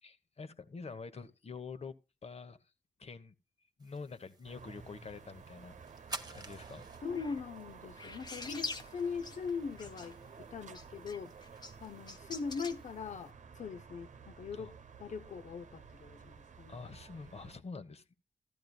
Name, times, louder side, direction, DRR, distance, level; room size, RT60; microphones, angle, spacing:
voice 1, 0.0-1.9 2.2-2.6 3.0-3.3 3.8-5.8 6.3-6.9 7.2-7.4 14.5-14.7 16.7-18.1, left 4 dB, 55° left, 1.2 m, -46 dB
sound 1, 3.8-13.3, right 3 dB, 30° right, 1.3 m, -53 dB
sound 2, 4.4-17.6, right 6 dB, 80° right, 0.9 m, -53 dB
voice 2, 7.0-11.3 11.8-14.7 15.0-16.9, left 5 dB, 75° left, 0.7 m, -41 dB
sound 3, 7.1-7.3 8.0-9.5 9.8-10.3 10.7-12.8, left 3 dB, 35° left, 1.2 m, -45 dB
14.5 x 12.5 x 2.3 m
cardioid pair, 65°, 12 cm